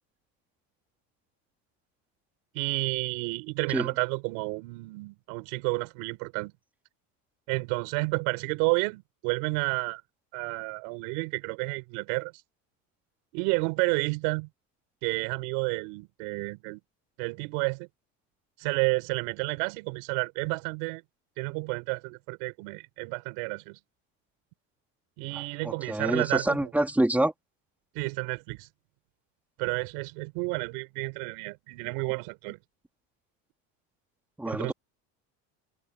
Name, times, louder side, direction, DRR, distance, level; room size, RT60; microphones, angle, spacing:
voice 1, 2.5-6.5 7.5-10.0 10.3-12.3 13.3-14.5 15.0-16.8 17.2-17.9 18.6-21.0 21.4-23.8 25.2-26.7 27.9-28.7 29.6-32.6 34.4-34.7, right 31 dB, 90° right, 5.2 m, -31 dB
voice 2, 25.6-27.3 34.4-34.7, right 1 dB, 5° right, 4.0 m, -26 dB
cardioid pair, 160°, 35 cm